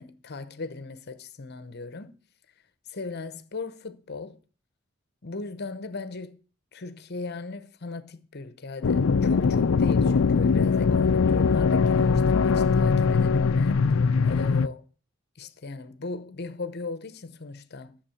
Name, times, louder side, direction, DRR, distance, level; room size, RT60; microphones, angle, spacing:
voice 1, 0.0-2.2 2.9-4.4 5.2-6.4 6.7-13.8 14.3-14.8 15.4-18.0, left 3 dB, 55° left, 0.9 m, -38 dB
sound 1, 8.8-14.7, left 5 dB, 75° left, 0.5 m, -21 dB
12.0 x 7.3 x 7.0 m
head